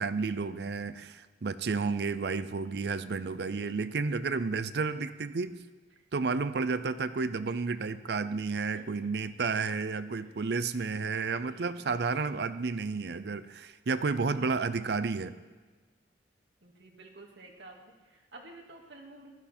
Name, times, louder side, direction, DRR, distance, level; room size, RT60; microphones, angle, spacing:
voice 1, 0.0-5.6 6.1-15.3, right 4 dB, 65° right, 13 dB, 0.5 m, -31 dB
voice 2, 10.8-11.6 14.2-14.6 16.6-19.3, right 2 dB, 80° right, 0 dB, 2.0 m, -52 dB
15.5 x 12.0 x 4.4 m, 1.3 s
head